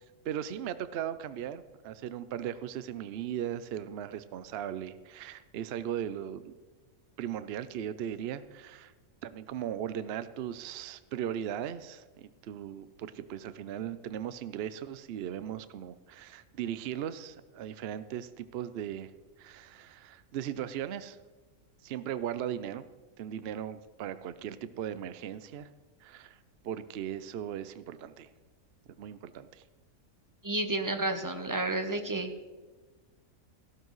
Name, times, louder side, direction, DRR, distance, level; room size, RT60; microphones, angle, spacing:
voice 1, 0.2-6.5 7.2-8.9 9.2-19.1 19.4-21.2 21.8-22.8 23.2-25.7 26.0-26.4 26.6-28.3 29.0-29.6, right 10 dB, 60° right, 13 dB, 0.7 m, -38 dB
voice 2, 30.4-32.3, right 2 dB, 20° right, 6 dB, 0.7 m, -31 dB
14.5 x 12.5 x 3.1 m, 1.3 s
omnidirectional pair, 1.5 m